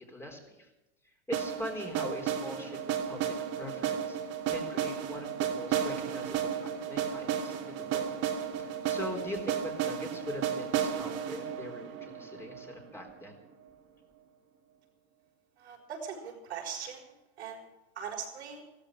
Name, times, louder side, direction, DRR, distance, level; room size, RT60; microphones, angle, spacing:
voice 1, 0.1-0.7 1.3-4.2 4.5-8.1 8.6-13.4, left 1 dB, 10° left, 1 dB, 3.9 m, -42 dB
sound 1, 1.3-13.2, right 8 dB, 45° right, 2.9 m, -33 dB
voice 2, 15.6-17.1 17.4-17.7 18.0-18.6, right 7 dB, 85° right, 0 dB, 5.5 m, -40 dB
15.5 x 14.0 x 6.5 m, 1.0 s
hypercardioid pair, 115°, 32 cm